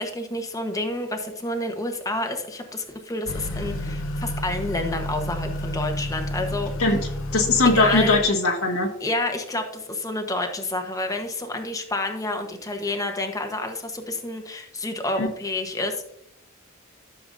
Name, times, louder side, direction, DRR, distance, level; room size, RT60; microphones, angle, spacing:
voice 1, 0.0-6.7 7.6-8.2 9.0-16.1, left 2 dB, 15° left, 5 dB, 1.1 m, -29 dB
Motor vehicle (road) / Accelerating revving vroom, 3.3-8.2, left 1 dB, 65° left, 0.9 m, -30 dB
voice 2, 6.8-8.9 15.2-15.3, left 3 dB, 80° left, 1 dB, 1.6 m, -20 dB
13.0 x 6.9 x 2.6 m, 0.75 s
head